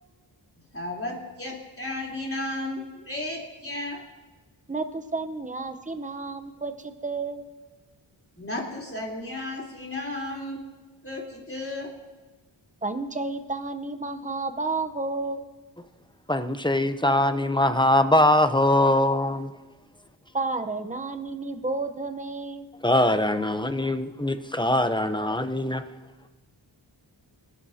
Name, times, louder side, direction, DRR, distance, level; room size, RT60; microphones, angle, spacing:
voice 1, 0.7-4.0 8.4-10.6 11.0-11.9, left 1 dB, 25° left, -3 dB, 3.7 m, -34 dB
voice 2, 4.7-7.5 12.8-15.5 20.3-22.7, right 3 dB, 15° right, 8 dB, 0.9 m, -31 dB
voice 3, 16.3-19.5 22.8-25.8, left 1 dB, 10° left, 9 dB, 0.7 m, -22 dB
28.0 x 11.5 x 2.8 m, 1.2 s
wide cardioid pair, 50°, 47 cm